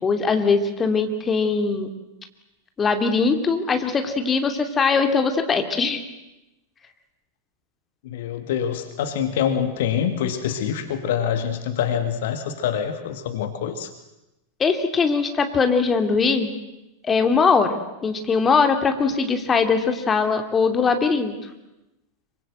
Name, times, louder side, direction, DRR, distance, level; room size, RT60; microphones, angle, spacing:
voice 1, 0.0-1.9 2.8-6.0 14.6-16.5 17.0-21.3, left 5 dB, 20° left, 6 dB, 2.8 m, -21 dB
voice 2, 8.0-13.9, left 8 dB, 55° left, 8 dB, 1.9 m, -25 dB
26.0 x 24.5 x 7.9 m, 0.97 s
figure-of-eight pair, 90°, 0 cm